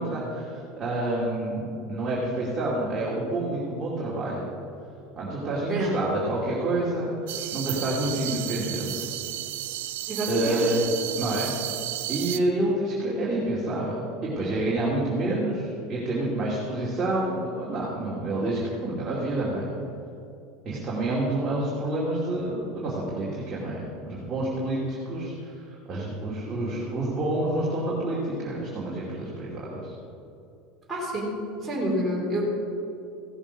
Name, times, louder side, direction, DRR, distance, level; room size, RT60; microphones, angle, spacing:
voice 1, 0.0-4.5 5.2-9.1 10.3-10.9 11.2-11.5 12.1-19.7 20.6-29.9, right 1 dB, 25° right, -7 dB, 2.5 m, -28 dB
sound 1, 7.3-12.4, right 14 dB, 85° right, 0.5 m, -33 dB
voice 2, 10.1-10.6 30.9-31.3 31.6-32.4, right 1 dB, 10° right, -7 dB, 3.3 m, -28 dB
15.5 x 7.2 x 5.3 m, 2.7 s
supercardioid pair, 135°, 0 cm